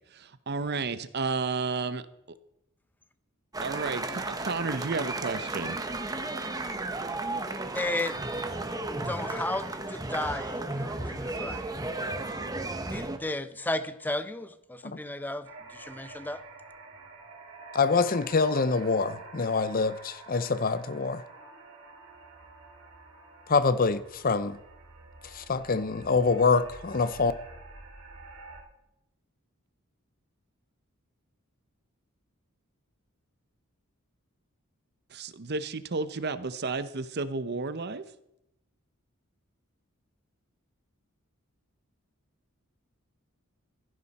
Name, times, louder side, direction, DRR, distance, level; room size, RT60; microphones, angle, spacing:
voice 1, 0.5-2.0 3.6-5.8 35.1-38.0, right 4 dB, 50° right, 0.8 m, -32 dB
sound 1, 3.5-13.2, right 2 dB, 15° right, 1.1 m, -34 dB
voice 2, 7.7-8.2 9.1-11.6 12.9-14.5 14.8-15.5 15.8-16.4, left 2 dB, 10° left, 0.7 m, -33 dB
sound 2, 15.4-28.6, right 3 dB, 75° right, 3.6 m, -48 dB
voice 3, 17.7-21.2 23.5-24.6 25.3-27.3, left 4 dB, 40° left, 0.7 m, -25 dB
15.5 x 15.5 x 4.2 m
head